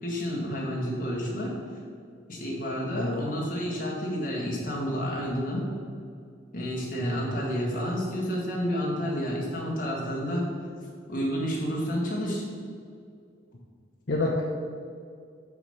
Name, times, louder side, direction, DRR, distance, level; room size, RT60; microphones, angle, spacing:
voice 1, 0.0-1.5 2.3-5.7 6.5-10.5 11.1-12.4, equal, 45° left, -4 dB, 1.9 m, -30 dB
voice 2, 7.0-7.3 14.1-14.4, left 2 dB, 65° left, -3 dB, 0.8 m, -28 dB
6.5 x 5.8 x 5.6 m, 2.3 s
head